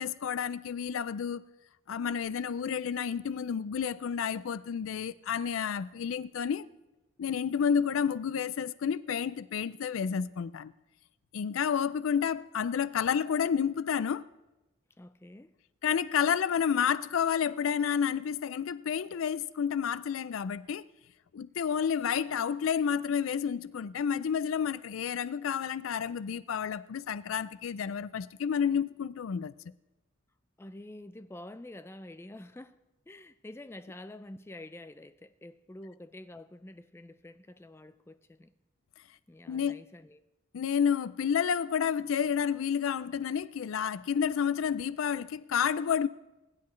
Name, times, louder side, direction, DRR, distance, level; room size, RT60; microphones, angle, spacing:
voice 1, 0.0-1.4 1.9-6.7 7.2-10.7 11.3-14.3 15.8-20.9 21.3-29.5 39.5-39.8 40.5-46.1, left 7 dB, 85° left, 0.4 m, -30 dB
voice 2, 15.0-15.5 30.6-32.8 33.1-38.5 39.3-40.2, left 1 dB, 10° left, 0.3 m, -47 dB
20.5 x 10.5 x 3.2 m
head